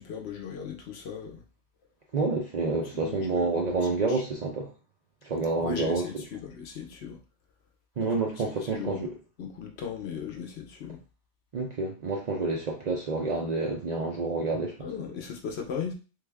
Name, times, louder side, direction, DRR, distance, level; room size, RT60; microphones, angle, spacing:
voice 1, 0.0-1.4 2.9-3.7 4.1-4.2 5.6-7.2 8.0-8.1 8.7-9.1 9.4-11.0 14.8-15.9, left 7 dB, 65° left, 3 dB, 0.8 m, -37 dB
voice 2, 2.1-4.7 5.2-6.1 8.0-9.1 11.5-14.7, right 3 dB, 50° right, 0 dB, 0.5 m, -28 dB
3.3 x 2.2 x 3.4 m, 0.33 s
omnidirectional pair, 1.2 m